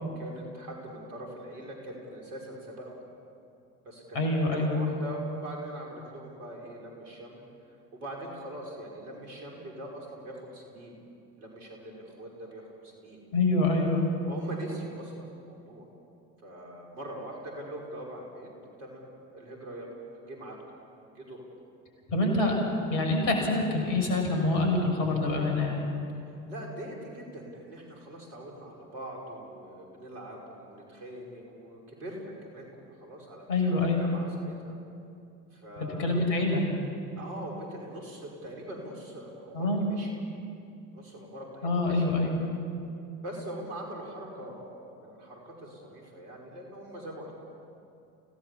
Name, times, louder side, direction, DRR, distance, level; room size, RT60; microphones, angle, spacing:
voice 1, 0.0-3.1 3.8-4.3 4.7-7.4 8.0-11.0 11.4-13.2 14.3-15.8 16.4-18.5 18.8-19.1 19.3-20.6 21.1-21.4 26.3-34.8 35.5-36.4 37.2-40.2 40.9-42.1 43.2-47.3, right 1 dB, 75° right, -1 dB, 5.7 m, -42 dB
voice 2, 4.1-4.8 13.3-14.0 22.1-22.6 22.9-25.8 33.5-34.0 35.8-36.6 39.5-39.8 41.6-42.3, left 2 dB, 60° left, 2 dB, 6.5 m, -26 dB
29.5 x 17.5 x 7.3 m, 2.6 s
figure-of-eight pair, 65°, 46 cm